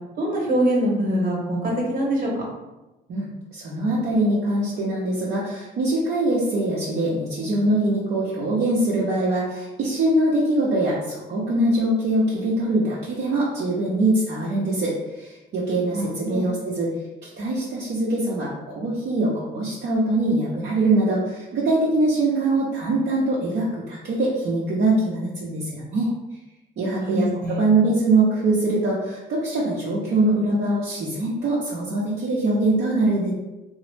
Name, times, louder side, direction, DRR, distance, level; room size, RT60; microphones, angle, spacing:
voice 1, 0.2-2.3 15.9-16.5 27.0-27.6, right 1 dB, 45° right, -3 dB, 1.0 m, -24 dB
voice 2, 3.1-16.9 17.2-26.1 26.8-33.3, right 2 dB, 60° right, -6 dB, 0.6 m, -23 dB
2.9 x 2.0 x 3.2 m, 1.0 s
cardioid pair, 90°, 20 cm